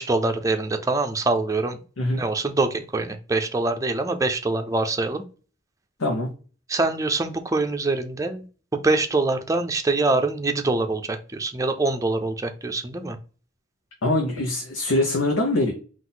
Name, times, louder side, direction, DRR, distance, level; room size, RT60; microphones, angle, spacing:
voice 1, 0.0-1.8 2.1-5.2 6.7-8.4 8.7-13.2, right 3 dB, 15° right, 5 dB, 0.5 m, -24 dB
voice 2, 6.0-6.3 14.0-15.7, left 1 dB, 90° left, 1 dB, 0.8 m, -23 dB
4.0 x 2.5 x 3.9 m, 0.37 s
head